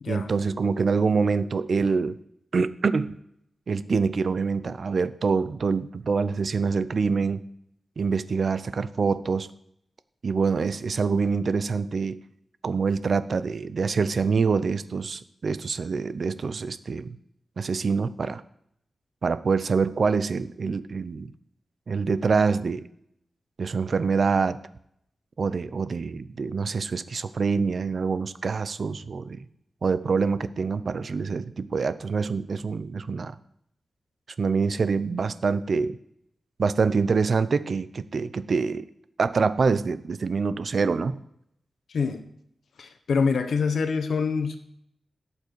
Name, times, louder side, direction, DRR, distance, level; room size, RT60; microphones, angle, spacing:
voice 1, 0.1-2.2 2.5-3.1 3.7-7.4 8.0-9.5 10.2-12.2 12.6-17.2 17.6-18.4 19.2-21.3 21.9-22.8 23.6-24.6 25.4-29.4 29.8-33.3 34.4-36.0 36.6-38.9 39.2-41.2, right 5 dB, 55° right, 14 dB, 0.6 m, -25 dB
voice 2, 41.9-42.2 42.8-44.6, left 5 dB, 75° left, 8 dB, 1.2 m, -25 dB
16.5 x 7.2 x 4.7 m, 0.73 s
wide cardioid pair, 130°, 0 cm